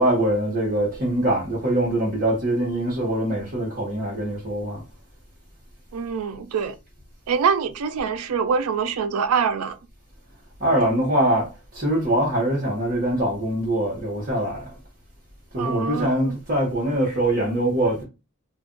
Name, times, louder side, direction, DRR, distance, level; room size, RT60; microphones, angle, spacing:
voice 1, 0.0-4.8 10.6-14.8 15.5-18.0, right 1 dB, 40° right, 1.0 m, -23 dB
voice 2, 5.9-6.8 7.3-9.8 15.6-16.3, right 6 dB, 80° right, 0.4 m, -24 dB
2.4 x 2.2 x 3.7 m
head